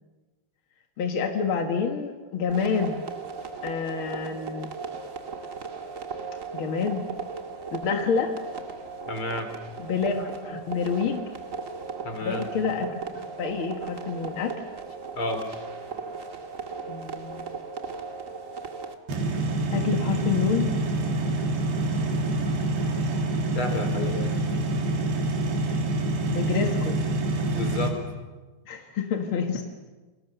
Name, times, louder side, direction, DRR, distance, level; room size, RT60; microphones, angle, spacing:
voice 1, 1.0-3.0 3.6-4.7 6.5-7.0 7.7-8.3 9.8-11.2 12.2-14.6 16.9-17.5 19.7-20.7 26.3-27.0 28.7-29.6, left 6 dB, 55° left, 4 dB, 1.5 m, -28 dB
sound 1, 2.5-18.9, right 5 dB, 45° right, 1.0 m, -37 dB
voice 2, 9.1-9.5 12.0-12.5 15.2-15.4 23.6-24.3 27.5-28.0, left 2 dB, 35° left, 7 dB, 3.5 m, -31 dB
sound 2, 19.1-27.9, right 2 dB, 80° right, 5.1 m, -26 dB
29.5 x 23.5 x 6.8 m, 1.2 s
omnidirectional pair, 4.5 m